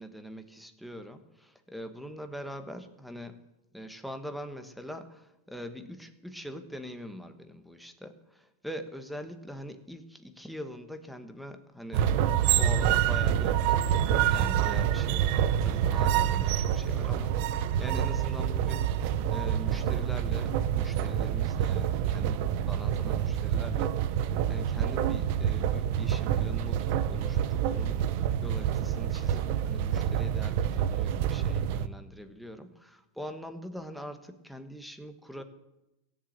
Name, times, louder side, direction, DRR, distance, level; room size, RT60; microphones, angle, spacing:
voice 1, 0.0-3.4 3.7-12.2 12.6-35.4, equal, ahead, 8 dB, 1.3 m, -43 dB
sound 1, 11.9-31.9, right 10 dB, 55° right, 0.8 m, -27 dB
16.0 x 7.4 x 8.8 m, 0.94 s
supercardioid pair, 130°, 0 cm